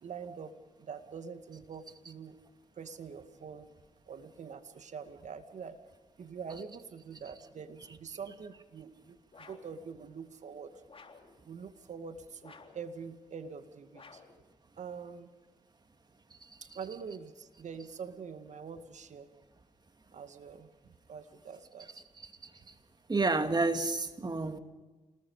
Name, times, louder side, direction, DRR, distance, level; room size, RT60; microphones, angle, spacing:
voice 1, 0.0-2.4 2.8-3.7 4.1-5.8 6.2-10.8 11.4-14.2 14.8-15.3 16.6-19.3 20.1-22.0, right 6 dB, 60° right, 9 dB, 2.1 m, -45 dB
sound 1, 9.3-9.8 10.9-11.3 12.4-12.9 13.9-14.4, left 4 dB, 40° left, 3.7 m, -54 dB
voice 2, 22.2-22.7 23.1-24.6, right 3 dB, 30° right, 8 dB, 2.4 m, -31 dB
28.5 x 20.0 x 5.0 m, 1.2 s
supercardioid pair, 50°, 14 cm